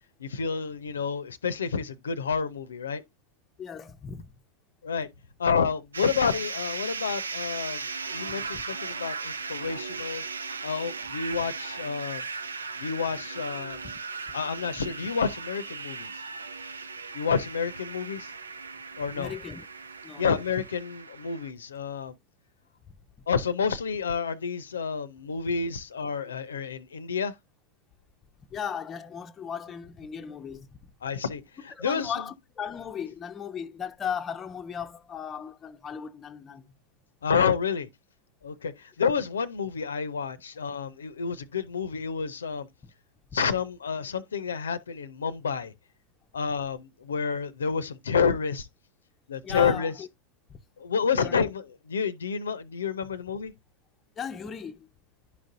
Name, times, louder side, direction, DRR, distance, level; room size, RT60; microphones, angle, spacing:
voice 1, 0.2-3.0 4.8-5.1 5.4-10.2 10.6-12.2 12.8-13.8 14.3-16.2 17.1-18.3 19.0-19.3 20.2-22.1 23.3-27.3 31.0-32.1 37.2-37.9 38.4-42.7 43.3-45.7 46.3-48.7 49.3-49.9 50.8-53.5, left 6 dB, 70° left, 0.6 m, -29 dB
voice 2, 3.6-4.3 8.4-8.6 13.8-13.9 19.1-19.7 20.0-20.3 22.9-23.0 28.5-30.9 31.8-36.6 42.8-42.9 49.4-50.1 50.5-50.6 51.2-51.4 54.2-54.9, left 7 dB, 20° left, 0.6 m, -37 dB
sound 1, 5.9-21.5, right 4 dB, 75° right, 0.6 m, -37 dB
11.0 x 5.1 x 2.6 m
figure-of-eight pair, 90°, 0 cm